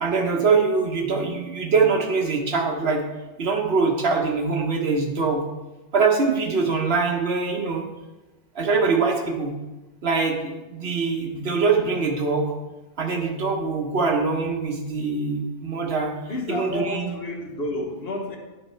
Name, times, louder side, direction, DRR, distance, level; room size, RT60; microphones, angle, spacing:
voice 1, 0.0-3.0 3.4-5.5 5.9-7.8 8.5-9.5 10.0-12.5 13.0-16.1 16.5-17.1, right 4 dB, 60° right, 2 dB, 1.2 m, -23 dB
voice 2, 16.3-18.4, left 2 dB, 60° left, 1 dB, 1.3 m, -30 dB
9.9 x 4.3 x 4.4 m, 1.1 s
omnidirectional pair, 1.2 m